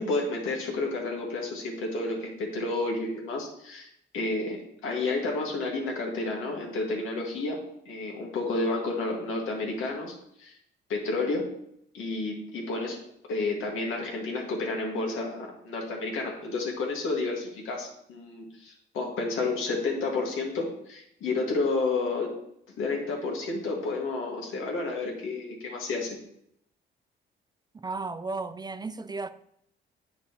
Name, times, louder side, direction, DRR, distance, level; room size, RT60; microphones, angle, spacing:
voice 1, 0.0-3.9 4.1-7.6 7.9-10.5 10.9-11.4 11.9-13.0 13.3-22.3 22.8-26.2, left 3 dB, 90° left, 1.8 m, -30 dB
voice 2, 27.7-29.3, right 3 dB, 20° right, 0.3 m, -34 dB
8.6 x 5.9 x 2.9 m
cardioid pair, 90°, 20 cm